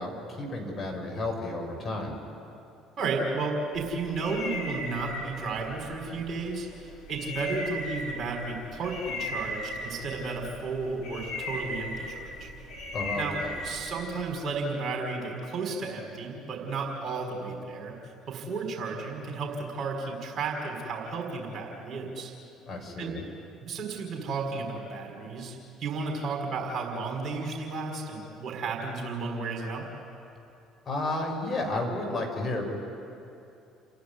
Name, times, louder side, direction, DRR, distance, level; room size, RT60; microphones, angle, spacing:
voice 1, 0.0-2.2 12.9-13.5 22.7-23.2 30.9-32.7, left 2 dB, 30° left, 0 dB, 6.1 m, -32 dB
voice 2, 3.0-12.5 13.1-13.4 13.6-17.9 18.3-22.3 23.0-23.2 23.6-29.9, right 3 dB, 40° right, 1 dB, 5.1 m, -33 dB
sound 1, 3.7-14.4, left 1 dB, 70° left, 3.6 m, -38 dB
30.0 x 11.5 x 9.7 m, 2.7 s
figure-of-eight pair, 55°, 0 cm